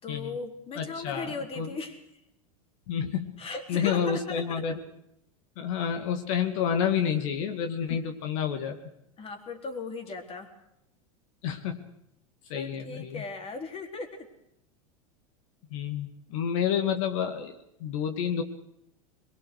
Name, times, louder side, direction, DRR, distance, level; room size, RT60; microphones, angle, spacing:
voice 1, 0.0-2.0 3.4-4.6 9.2-10.5 12.5-14.3, left 4 dB, 30° left, 4 dB, 4.4 m, -37 dB
voice 2, 0.7-1.7 2.9-3.3 3.7-4.8 5.6-8.8 11.4-11.8 12.5-13.2 15.7-17.6 17.8-18.4, left 8 dB, 65° left, 6 dB, 2.3 m, -29 dB
22.5 x 22.5 x 6.6 m, 0.80 s
hypercardioid pair, 95°, 18 cm